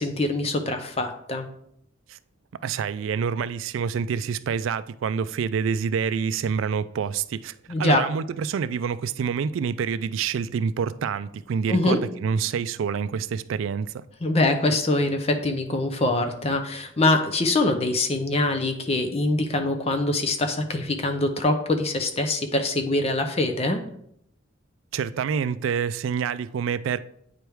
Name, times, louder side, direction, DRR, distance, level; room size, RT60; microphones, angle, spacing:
voice 1, 0.0-1.5 7.7-8.0 11.7-12.0 14.2-23.8, left 2 dB, 30° left, 0.6 m, -24 dB
voice 2, 2.5-14.0 24.9-27.0, right 6 dB, 75° right, 0.3 m, -27 dB
8.9 x 3.4 x 4.6 m
head